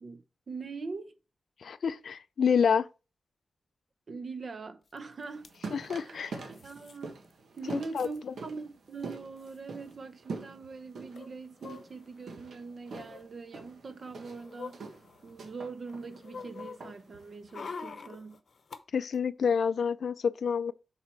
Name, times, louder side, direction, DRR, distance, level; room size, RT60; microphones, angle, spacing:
voice 1, 0.0-1.1 4.1-5.5 5.9-6.2 6.6-7.2 7.6-14.8 15.2-18.4, right 4 dB, 50° right, 0.8 m, -42 dB
voice 2, 1.6-2.9 5.7-6.4 7.7-8.3 18.9-20.7, left 6 dB, 75° left, 0.4 m, -28 dB
sound 1, 5.0-5.1 5.2-5.5 6.5-7.0 7.3-7.4 7.6-8.2 9.0-9.1 9.4-9.6 11.1-12.3 12.9-13.2 13.9-15.5 15.9-18.8 19.1-19.2, left 5 dB, 60° left, 0.8 m, -46 dB
sound 2, 5.2-17.5, right 4 dB, 85° right, 1.5 m, -45 dB
7.4 x 4.2 x 4.5 m
wide cardioid pair, 160°, 0 cm